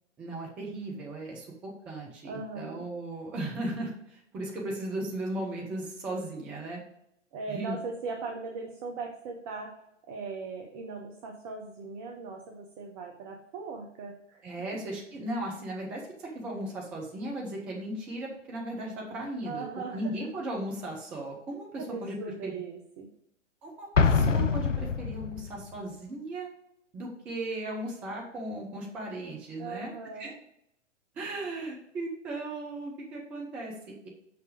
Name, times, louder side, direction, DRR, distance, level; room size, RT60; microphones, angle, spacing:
voice 1, 0.2-6.8 7.5-7.8 14.4-19.7 19.9-22.2 22.4-22.6 23.6-26.5 26.9-30.3 31.2-34.1, right 1 dB, 5° right, -2 dB, 0.3 m, -36 dB
voice 2, 2.2-2.9 7.3-9.7 10.1-14.4 19.4-20.1 21.8-23.1 29.6-30.4, right 4 dB, 30° right, 1 dB, 1.0 m, -39 dB
Explosion, 23.9-25.6, left 5 dB, 80° left, 0.7 m, -25 dB
6.1 x 5.4 x 4.9 m, 0.75 s
figure-of-eight pair, 115°, 37 cm